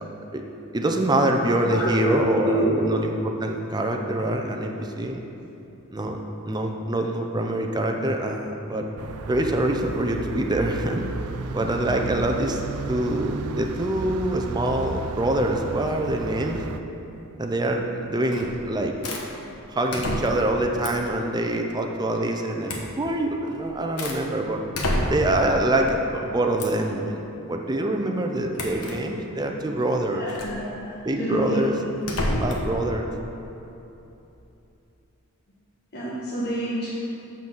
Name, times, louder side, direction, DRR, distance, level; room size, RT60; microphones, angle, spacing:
voice 1, 0.7-5.2 5.9-6.2 6.5-8.9 9.3-11.1 11.5-12.6 12.9-16.6 17.4-19.0 19.7-24.6 25.1-30.2 31.0-31.7 32.4-33.1, right 1 dB, 20° right, 3 dB, 0.6 m, -25 dB
voice 2, 1.7-2.7 30.1-31.6 32.3-32.4 35.9-36.9, right 1 dB, 50° left, -8 dB, 1.4 m, -28 dB
sound 1, 9.0-16.8, right 4 dB, 75° right, 0.4 m, -34 dB
sound 2, 18.3-18.6 19.0-19.3 19.9-20.5 20.8-21.1 22.7-22.9 23.5-24.2 24.7-25.4 26.6-26.9 28.5-29.0 30.3-30.6 32.0-32.7, left 1 dB, 80° left, 1.1 m, -28 dB
7.2 x 6.0 x 6.1 m, 2.9 s
head